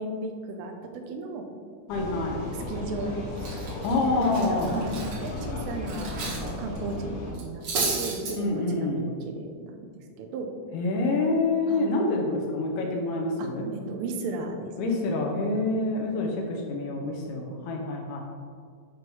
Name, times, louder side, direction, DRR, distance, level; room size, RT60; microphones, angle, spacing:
voice 1, 0.0-1.5 2.3-3.1 4.1-9.7 10.2-10.5 11.7-12.0 13.4-14.7, right 2 dB, 85° right, 3 dB, 3.3 m, -35 dB
voice 2, 1.9-2.5 3.8-4.8 8.3-9.1 10.7-13.7 14.8-18.2, left 2 dB, 75° left, 0 dB, 3.1 m, -27 dB
Vehicle, 1.9-7.3, left 2 dB, 55° left, 3.4 m, -35 dB
Cutlery silverware, 2.8-3.0 3.4-6.5 6.7-6.9 7.3-8.3, right 3 dB, 65° right, 1.6 m, -32 dB
10.5 x 3.7 x 6.0 m, 2.1 s
omnidirectional pair, 5.8 m